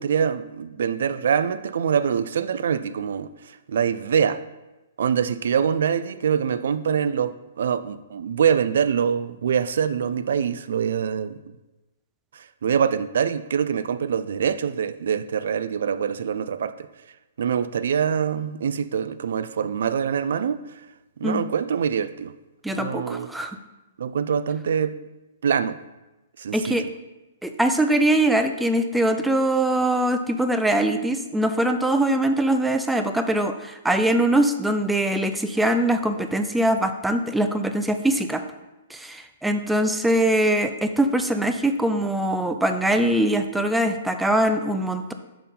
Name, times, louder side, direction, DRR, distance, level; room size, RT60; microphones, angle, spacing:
voice 1, 0.0-4.4 5.0-11.4 12.3-16.9 17.4-20.6 21.2-22.3 22.7-23.3 24.0-25.0 25.4-25.8 26.4-26.8, right 7 dB, 70° right, 0.3 m, -24 dB
voice 2, 22.6-23.6 26.5-26.9 27.4-38.4 38.9-45.1, right 1 dB, 5° right, 0.4 m, -22 dB
5.5 x 4.4 x 5.3 m
hypercardioid pair, 140°, 0 cm